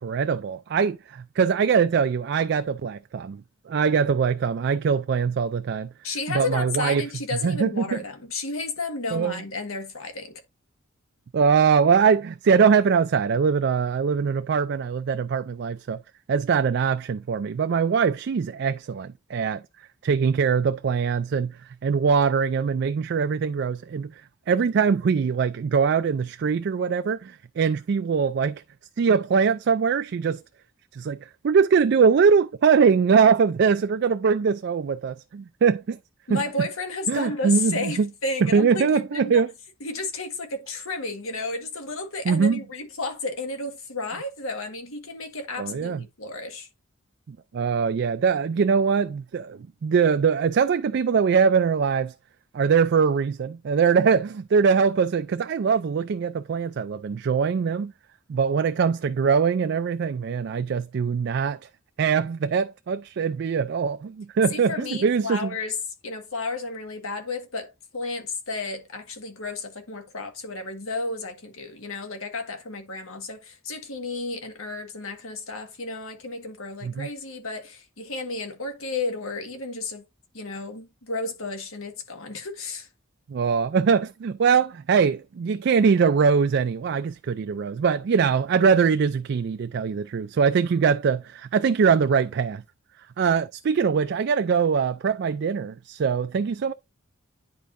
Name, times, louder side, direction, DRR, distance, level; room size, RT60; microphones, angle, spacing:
voice 1, 0.0-5.9 6.3-7.1 7.4-8.0 9.1-9.4 11.3-16.0 16.3-19.6 20.0-24.1 24.5-28.6 29.0-30.4 30.9-36.0 36.3-36.4 37.1-38.1 38.4-39.5 42.3-42.6 45.6-46.0 47.3-52.1 52.5-57.9 58.3-61.6 62.0-65.5 76.8-77.1 83.3-92.6 93.2-96.7, right 6 dB, 55° right, 0.3 m, -22 dB
voice 2, 6.0-10.3 36.3-39.4 39.8-46.7 64.5-65.8 66.0-80.0 80.3-82.9, left 3 dB, 85° left, 1.6 m, -32 dB
10.0 x 4.5 x 2.6 m
head